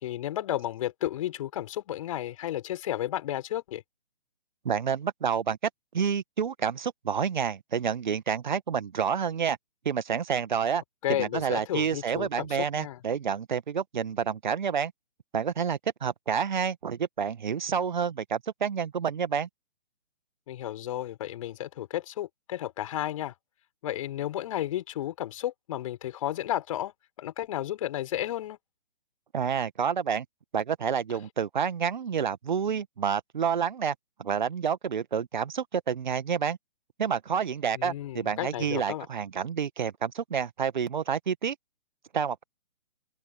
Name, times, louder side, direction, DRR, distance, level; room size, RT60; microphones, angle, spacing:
voice 1, 0.0-3.8 11.0-13.0 20.5-23.3 23.8-28.6 37.7-39.1, left 12 dB, 35° left, 4.9 m, -33 dB
voice 2, 4.7-5.6 5.9-9.6 9.9-10.8 11.1-14.9 15.3-19.5 29.3-30.3 30.5-36.6 37.0-41.6 42.1-42.4, right 7 dB, 50° right, 1.7 m, -29 dB
open air
figure-of-eight pair, 135°, 30 cm